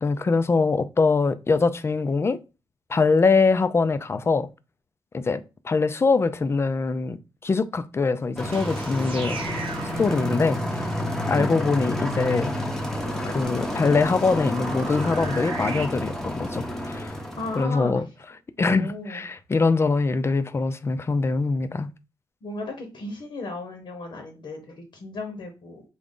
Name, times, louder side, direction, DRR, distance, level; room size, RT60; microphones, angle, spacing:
voice 1, 0.0-2.4 2.9-4.5 5.1-9.4 10.0-10.9 11.3-12.5 13.2-17.1 17.6-18.0 18.6-21.9, left 4 dB, 30° left, 0.4 m, -23 dB
sound 1, 8.4-17.6, left 1 dB, 5° left, 0.7 m, -30 dB
sound 2, 8.4-15.8, right 5 dB, 75° right, 0.6 m, -40 dB
voice 2, 11.3-11.7 17.4-18.0 18.7-19.2 22.4-25.8, left 2 dB, 65° left, 0.9 m, -35 dB
3.8 x 2.3 x 3.7 m
cardioid pair, 95°, 9 cm